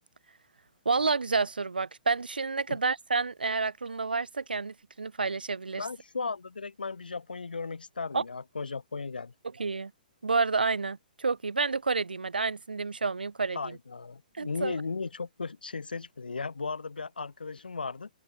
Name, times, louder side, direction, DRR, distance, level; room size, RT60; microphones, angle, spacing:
voice 1, 0.8-5.9 8.1-8.2 9.6-9.9 10.2-13.8 14.4-14.8, right 4 dB, 80° right, 0.8 m, -29 dB
voice 2, 5.8-9.3 13.5-18.1, left 4 dB, 75° left, 2.1 m, -36 dB
open air
figure-of-eight pair, 125°, 5 cm